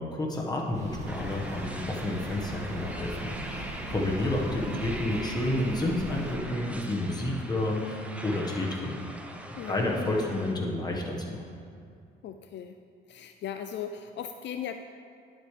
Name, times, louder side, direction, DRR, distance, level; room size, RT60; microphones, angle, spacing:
voice 1, 0.0-9.1 9.7-11.4, left 1 dB, 20° left, -2 dB, 1.5 m, -30 dB
sound 1, 0.7-6.4, right 1 dB, 35° right, 1.8 m, -38 dB
sound 2, 1.1-10.5, right 1 dB, 5° right, 0.8 m, -42 dB
voice 2, 9.6-9.9 12.2-12.8 13.1-14.7, left 9 dB, 65° left, 7 dB, 0.4 m, -37 dB
10.5 x 7.9 x 3.4 m, 2.3 s
cardioid pair, 90°, 20 cm